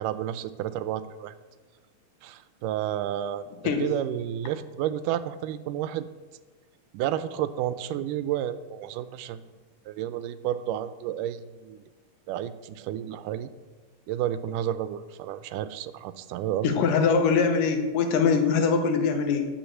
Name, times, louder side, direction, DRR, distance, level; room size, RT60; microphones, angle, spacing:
voice 1, 0.0-1.3 2.2-3.5 3.8-6.1 6.9-9.4 9.9-11.8 12.3-13.5 14.1-16.8, right 11 dB, 85° right, 14 dB, 2.1 m, -31 dB
voice 2, 16.6-19.5, left 5 dB, 85° left, 5 dB, 2.7 m, -22 dB
10.5 x 5.9 x 7.5 m, 1.4 s
omnidirectional pair, 3.7 m